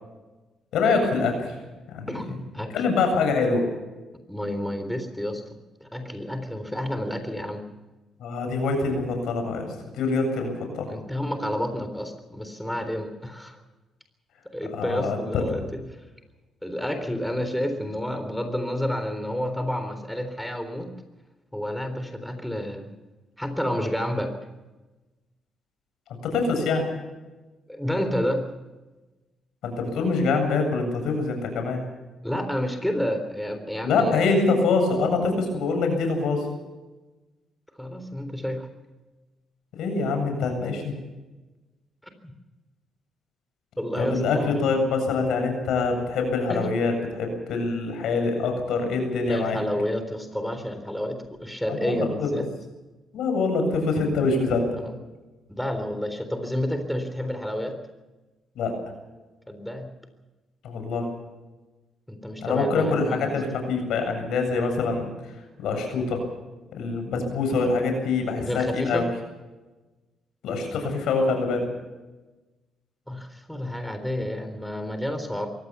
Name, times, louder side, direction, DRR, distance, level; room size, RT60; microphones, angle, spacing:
voice 1, 0.7-1.5 1.9-2.1 2.7-3.7 8.2-9.7 9.9-10.9 14.7-15.4 26.2-26.9 29.6-31.8 33.8-36.5 39.8-40.9 44.0-49.6 51.7-52.3 53.1-54.7 58.6-58.7 60.6-61.1 62.4-65.1 65.6-66.2 66.7-69.0 70.4-71.7, left 4 dB, 80° left, 5 dB, 7.7 m, -25 dB
voice 2, 2.1-2.7 4.3-5.4 5.8-7.7 10.9-13.6 14.5-15.8 16.6-20.9 21.5-22.9 23.4-24.4 27.7-28.5 32.2-34.3 37.8-38.7 42.2-42.3 43.8-44.7 46.5-46.7 49.3-52.5 54.8-54.9 55.5-57.8 59.5-59.9 62.1-63.3 68.4-69.1 73.1-75.5, equal, 5° left, 7 dB, 3.8 m, -30 dB
23.5 x 17.5 x 7.0 m, 1.1 s
cardioid pair, 90°, 0 cm